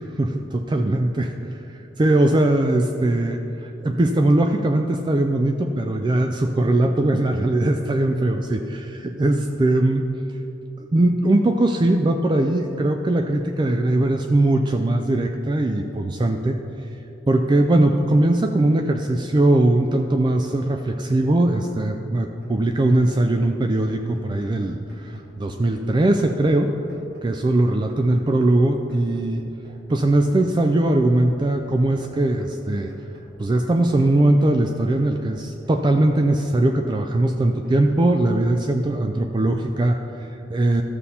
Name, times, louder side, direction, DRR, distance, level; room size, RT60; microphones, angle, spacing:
voice 1, 0.7-10.4 10.8-16.9 17.3-26.7 27.2-29.4 29.9-32.9 33.4-40.8, right 1 dB, 25° right, 5 dB, 0.3 m, -20 dB
sound 1, 22.4-23.4 23.6-25.4 25.6-27.4 27.6-29.4 29.6-31.4 31.6-33.4 33.6-35.4 35.6-37.4 37.6-38.4, right 1 dB, 55° right, 1.6 m, -49 dB
13.0 x 7.0 x 4.2 m, 3.0 s
head